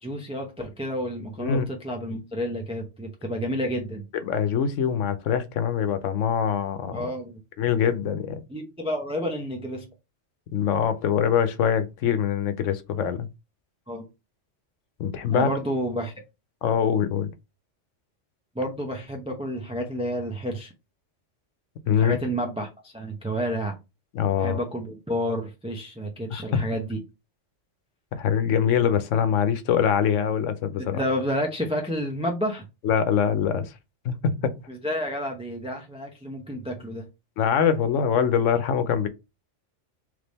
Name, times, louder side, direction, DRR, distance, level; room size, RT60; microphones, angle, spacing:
voice 1, 0.0-4.0 6.9-7.4 8.5-9.8 13.9-14.1 15.3-16.1 18.5-20.7 22.0-23.7 24.4-27.0 30.8-32.6 34.7-37.0, equal, 5° right, 0.5 m, -30 dB
voice 2, 4.1-7.1 7.6-8.4 10.5-13.3 15.0-15.5 16.6-17.3 21.9-22.2 24.1-24.6 26.3-26.7 28.1-31.0 32.8-33.7 34.0-34.5 37.4-39.1, left 8 dB, 90° left, 1.0 m, -24 dB
3.4 x 3.3 x 4.0 m
omnidirectional pair, 1.2 m